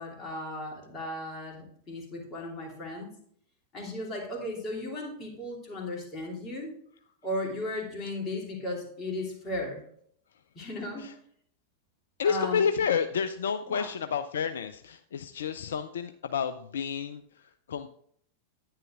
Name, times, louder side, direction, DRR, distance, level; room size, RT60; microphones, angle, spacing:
voice 1, 0.0-3.1 3.7-6.7 7.2-9.8 10.5-11.1 12.2-12.6 13.7-13.9, left 1 dB, 25° left, -1 dB, 2.6 m, -35 dB
voice 2, 12.2-17.9, left 6 dB, 65° left, 11 dB, 0.4 m, -30 dB
10.5 x 9.5 x 2.4 m, 0.64 s
figure-of-eight pair, 90°, 0 cm